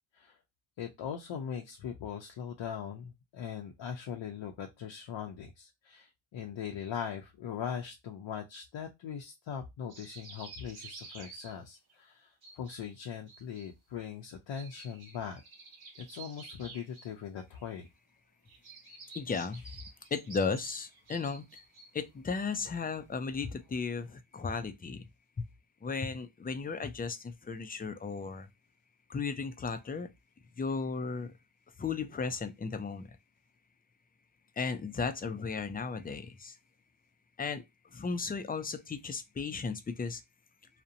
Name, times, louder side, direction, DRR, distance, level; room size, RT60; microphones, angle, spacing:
voice 1, 0.8-15.4 16.0-17.9, left 8 dB, 65° left, 0.6 m, -40 dB
sound 1, 9.9-11.9 12.4-13.0 13.3-13.7 14.5-17.1 17.4-17.9 18.5-22.1 22.7-22.8 23.1-24.1, right 4 dB, 50° right, 1.1 m, -51 dB
voice 2, 19.1-19.6 20.1-21.4 21.9-25.0 25.4-25.5 25.8-28.5 29.1-30.1 30.6-31.3 31.8-33.1 34.6-36.6 37.4-37.6 37.9-40.2, left 5 dB, 20° left, 0.3 m, -35 dB
2.5 x 2.1 x 2.7 m
cardioid pair, 75°, 48 cm